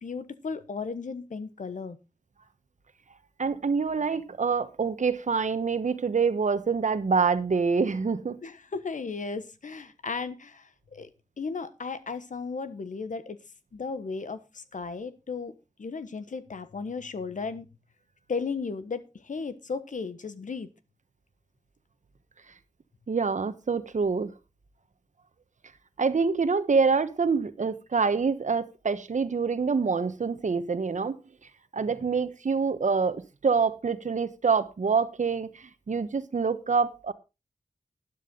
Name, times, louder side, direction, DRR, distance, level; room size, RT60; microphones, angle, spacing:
voice 1, 0.0-2.0 8.4-11.1 11.4-13.4 13.7-17.7 18.3-20.7, left 4 dB, 80° left, 1.2 m, -35 dB
voice 2, 3.4-8.4 23.1-24.3 26.0-31.2 31.7-37.1, right 5 dB, 75° right, 1.1 m, -26 dB
12.0 x 10.5 x 3.8 m
cardioid pair, 45°, 13 cm